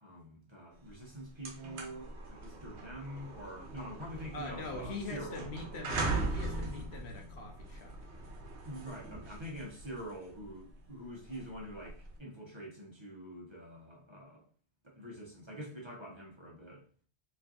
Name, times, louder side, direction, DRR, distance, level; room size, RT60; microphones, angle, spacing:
voice 1, 0.0-5.5 8.6-14.4 14.8-16.9, equal, 25° right, 1.1 m, -45 dB
sound 1, 0.9-1.0 1.3-12.2, right 2 dB, 75° right, 1.1 m, -40 dB
voice 2, 4.3-8.0, left 2 dB, 70° left, 1.0 m, -43 dB
4.3 x 3.2 x 2.5 m
omnidirectional pair, 1.1 m